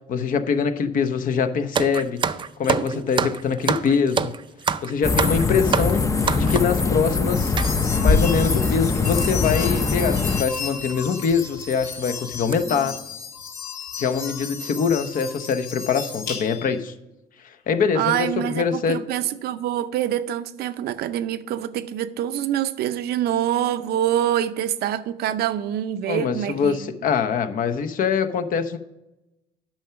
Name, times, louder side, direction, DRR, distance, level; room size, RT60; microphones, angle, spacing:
voice 1, 0.1-2.2 2.6-4.3 4.8-6.0 6.4-7.6 8.0-13.0 14.0-16.9 17.4-19.0 26.1-28.8, left 6 dB, 55° left, 0.8 m, -23 dB
sound 1, 1.7-6.8 7.6-7.7 8.5-8.6 8.7-8.9 9.9-10.1 10.6-10.7 11.2-11.3 11.7-12.0 12.3-12.5, right 6 dB, 30° right, 0.4 m, -26 dB
sound 2, 5.0-10.4, left 4 dB, 20° left, 0.6 m, -22 dB
sound 3, 7.3-16.8, left 4 dB, 75° left, 2.8 m, -31 dB
voice 2, 17.9-26.9, right 11 dB, 70° right, 0.6 m, -25 dB
8.9 x 5.8 x 5.8 m
cardioid pair, 110°, 17 cm